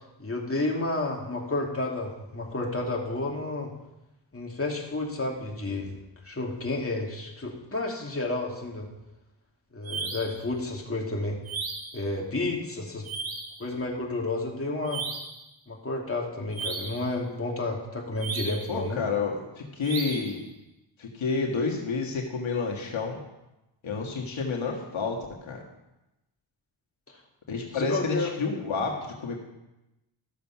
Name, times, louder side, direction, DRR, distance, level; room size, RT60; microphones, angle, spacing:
voice 1, 0.2-3.7 4.3-5.9 6.2-8.9 9.7-11.4 11.9-13.1 13.6-15.0 15.7-19.0 27.1-27.2 27.7-28.3, left 2 dB, 30° left, -1 dB, 2.7 m, -31 dB
sound 1, 9.8-10.4 11.4-12.0 13.0-13.6 14.9-15.4 16.5-17.1 18.2-18.7 19.8-20.4, right 4 dB, 80° right, 1.6 m, -35 dB
voice 2, 18.7-20.4 21.0-23.2 23.8-25.6 27.5-29.4, left 4 dB, 80° left, -1 dB, 1.8 m, -30 dB
13.5 x 6.9 x 5.9 m, 0.95 s
cardioid pair, 60°, 47 cm